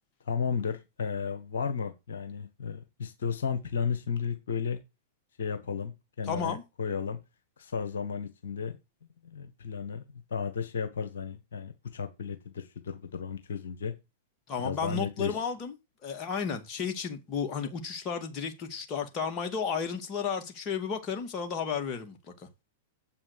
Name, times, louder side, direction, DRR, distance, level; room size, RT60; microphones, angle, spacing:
voice 1, 0.2-4.8 5.4-7.2 7.6-8.8 9.3-13.9 14.6-15.4, left 6 dB, 70° left, 1.4 m, -34 dB
voice 2, 6.3-6.6 14.5-15.8 16.0-22.5, left 6 dB, 35° left, 2.1 m, -33 dB
7.8 x 6.1 x 6.6 m
figure-of-eight pair, 95°, 0 cm